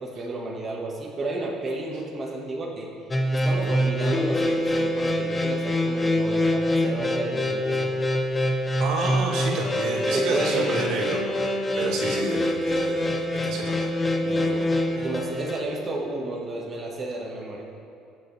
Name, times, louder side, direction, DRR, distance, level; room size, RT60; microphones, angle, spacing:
voice 1, 0.0-2.9 3.3-7.9 10.1-11.0 15.0-17.6, right 2 dB, 25° right, -3 dB, 1.3 m, -32 dB
sound 1, 3.1-15.6, left 1 dB, 15° left, 0.8 m, -25 dB
voice 2, 8.8-15.2, right 3 dB, 70° right, -3 dB, 2.6 m, -31 dB
22.0 x 7.9 x 3.2 m, 2.7 s
cardioid pair, 150°, 0 cm